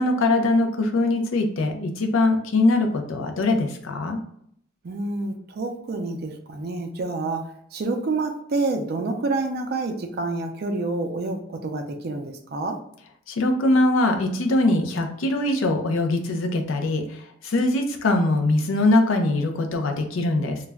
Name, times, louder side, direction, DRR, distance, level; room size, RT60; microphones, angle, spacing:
voice 1, 0.0-4.2 13.3-20.6, left 2 dB, 75° left, 5 dB, 0.5 m, -22 dB
voice 2, 4.8-12.8, right 3 dB, 50° right, 5 dB, 0.4 m, -28 dB
2.3 x 2.1 x 3.4 m, 0.68 s
head